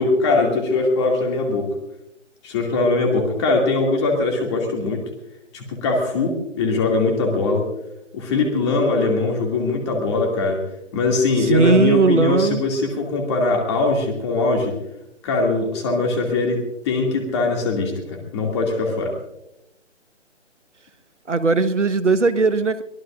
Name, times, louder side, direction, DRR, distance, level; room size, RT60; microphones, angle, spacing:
voice 1, 0.0-1.7 2.4-5.0 5.5-7.6 8.1-10.6 10.9-14.7 15.2-16.6 16.8-19.1, left 3 dB, 25° left, 2 dB, 2.5 m, -21 dB
voice 2, 11.4-12.6 21.3-22.8, right 4 dB, 75° right, 11 dB, 1.4 m, -18 dB
23.0 x 18.0 x 2.5 m, 0.87 s
figure-of-eight pair, 145°, 37 cm